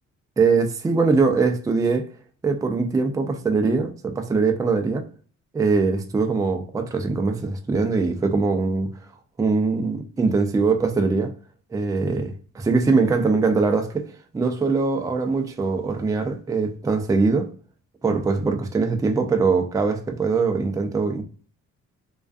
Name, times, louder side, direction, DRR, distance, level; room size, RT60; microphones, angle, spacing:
voice 1, 0.4-2.1 2.4-5.0 5.5-8.9 9.4-11.3 11.7-14.1 14.3-17.5 18.0-21.2, right 4 dB, 10° right, 0.4 m, -22 dB
2.3 x 2.3 x 2.4 m
cardioid pair, 90°, 30 cm